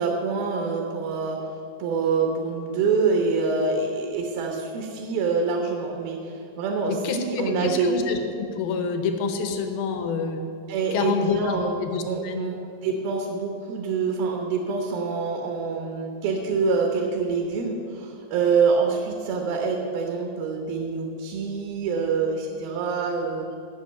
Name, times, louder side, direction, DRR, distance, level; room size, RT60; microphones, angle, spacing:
voice 1, 0.0-8.1 10.7-11.7 12.0-23.5, right 4 dB, 70° right, 2 dB, 2.6 m, -26 dB
voice 2, 6.9-10.4 10.9-12.5, left 5 dB, 75° left, 6 dB, 2.5 m, -27 dB
11.5 x 6.1 x 8.7 m, 2.6 s
omnidirectional pair, 4.8 m